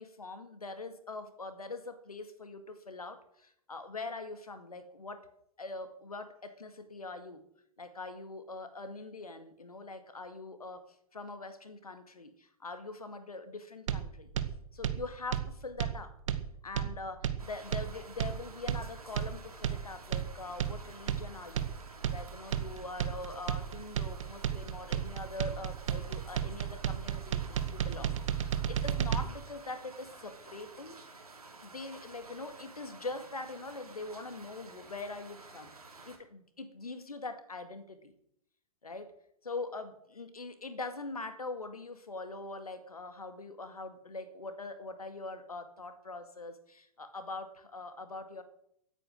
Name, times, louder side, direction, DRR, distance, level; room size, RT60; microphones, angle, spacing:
voice 1, 0.0-5.3 5.6-7.4 7.8-10.8 11.1-14.3 14.7-16.1 16.6-31.0 31.6-35.7 36.0-38.1 38.8-39.1 39.4-48.4, left 3 dB, 75° left, 9 dB, 2.1 m, -43 dB
sound 1, 13.9-29.2, right 9 dB, 55° right, 1.4 m, -33 dB
sound 2, 17.4-36.2, right 3 dB, 75° right, 3.2 m, -52 dB
16.0 x 9.1 x 6.5 m, 0.73 s
figure-of-eight pair, 105°, 19 cm